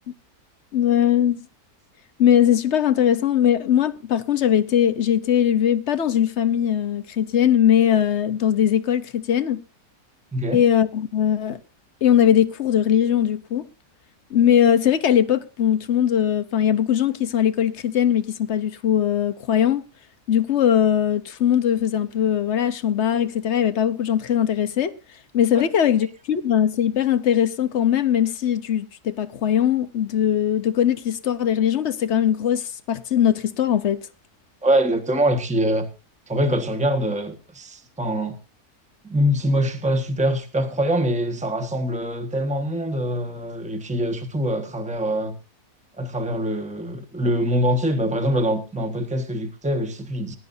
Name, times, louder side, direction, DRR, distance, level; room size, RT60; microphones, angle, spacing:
voice 1, 0.7-1.4 2.2-9.6 10.5-11.6 12.0-13.7 14.3-19.8 20.3-24.9 25.3-34.0, left 9 dB, 55° left, 1.0 m, -20 dB
voice 2, 34.6-35.9 36.3-38.4 39.0-45.4 46.0-50.4, equal, 5° right, 1.3 m, -24 dB
20.5 x 11.5 x 2.7 m
omnidirectional pair, 1.6 m